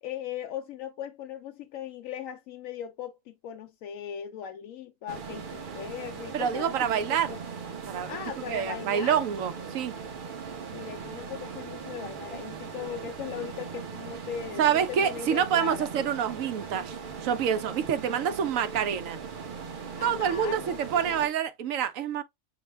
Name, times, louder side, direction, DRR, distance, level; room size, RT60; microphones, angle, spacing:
voice 1, 0.0-7.4 8.1-9.3 10.7-15.9 20.0-21.3, left 9 dB, 80° left, 1.0 m, -39 dB
sound 1, 5.1-21.3, right 6 dB, 45° right, 0.9 m, -39 dB
voice 2, 6.3-7.4 7.9-8.2 8.5-9.9 14.6-17.0 17.2-19.2 20.0-22.2, right 8 dB, 80° right, 1.1 m, -27 dB
6.2 x 2.1 x 3.3 m
omnidirectional pair, 1.4 m